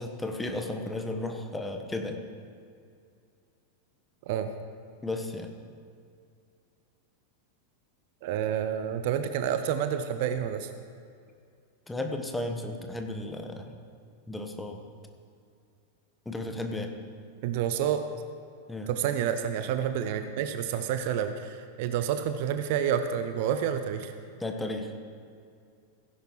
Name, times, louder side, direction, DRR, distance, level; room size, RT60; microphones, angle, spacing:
voice 1, 0.0-2.2 5.0-5.5 11.9-13.7 14.3-14.8 16.2-16.9 18.7-18.9 24.4-24.9, left 2 dB, 10° left, 4 dB, 1.2 m, -34 dB
voice 2, 8.2-10.7 17.4-18.0 18.9-24.1, right 9 dB, 50° right, 9 dB, 0.6 m, -29 dB
16.5 x 10.5 x 3.2 m, 2.3 s
figure-of-eight pair, 90°, 0 cm